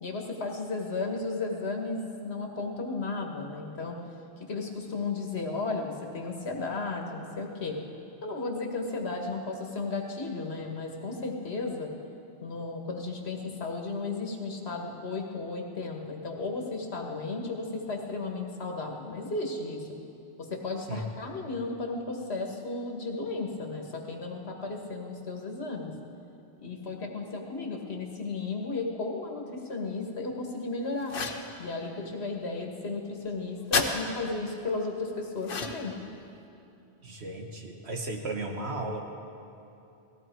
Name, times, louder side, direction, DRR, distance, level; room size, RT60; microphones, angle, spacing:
voice 1, 0.0-4.0 4.4-7.8 8.2-11.9 12.4-20.0 20.4-25.9 26.6-31.2 31.6-35.9, left 3 dB, 70° left, 2 dB, 1.8 m, -34 dB
sound 1, 31.1-31.5 33.7-33.9 35.4-35.9, left 4 dB, 55° left, 1.1 m, -29 dB
voice 2, 37.0-39.1, right 2 dB, 75° right, 2 dB, 1.7 m, -35 dB
19.0 x 15.0 x 4.6 m, 2.8 s
omnidirectional pair, 1.1 m